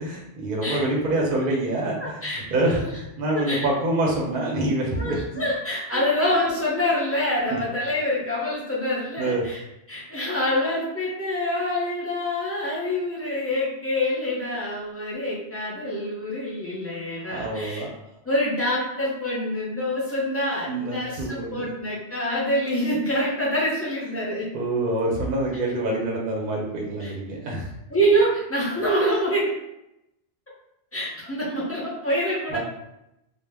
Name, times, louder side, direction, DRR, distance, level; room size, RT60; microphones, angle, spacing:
voice 1, 0.0-5.4 5.9-6.0 7.4-7.6 9.2-9.4 17.3-17.9 20.7-21.6 24.5-27.7 32.5-32.6, right 2 dB, 55° right, -2 dB, 0.6 m, -26 dB
voice 2, 2.0-2.9 3.3-3.7 5.0-9.6 9.9-17.8 18.3-24.5 27.0-27.1 27.9-29.5 30.9-32.6, equal, 20° left, -6 dB, 0.4 m, -26 dB
2.1 x 2.0 x 3.3 m, 0.86 s
omnidirectional pair, 1.2 m